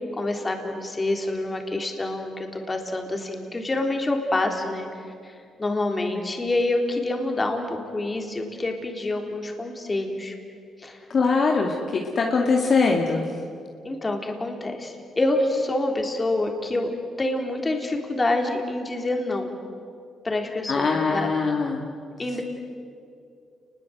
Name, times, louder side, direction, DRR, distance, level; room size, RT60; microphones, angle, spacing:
voice 1, 0.1-4.9 5.2-5.3 5.6-7.7 7.9-10.3 10.8-11.0 13.8-16.9 17.2-19.5 20.2-21.3 22.2-22.4, left 2 dB, 25° left, 3 dB, 3.9 m, -27 dB
voice 2, 11.1-13.2 20.7-21.8, left 4 dB, 50° left, 1 dB, 2.3 m, -22 dB
30.0 x 21.0 x 8.0 m, 2.4 s
cardioid pair, 90°, 0 cm